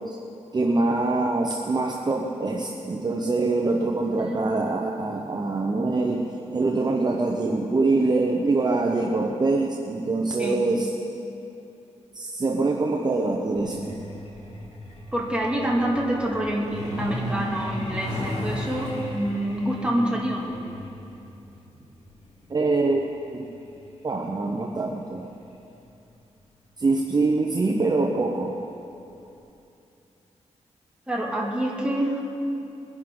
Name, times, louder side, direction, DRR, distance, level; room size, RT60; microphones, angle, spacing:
voice 1, 0.5-10.9 12.1-14.0 22.5-23.0 23.3-23.4 24.0-25.3 26.8-28.6, right 3 dB, 35° right, 0 dB, 0.9 m, -24 dB
Truck, 13.5-25.8 27.1-27.2 27.6-27.8 28.2-28.5 28.8-28.9 29.4-29.5, left 1 dB, 70° left, 2.8 m, -36 dB
voice 2, 15.1-20.5 31.1-32.2, right 1 dB, 10° right, -3 dB, 2.3 m, -27 dB
21.5 x 11.0 x 3.9 m, 2.8 s
wide cardioid pair, 100°, 12 cm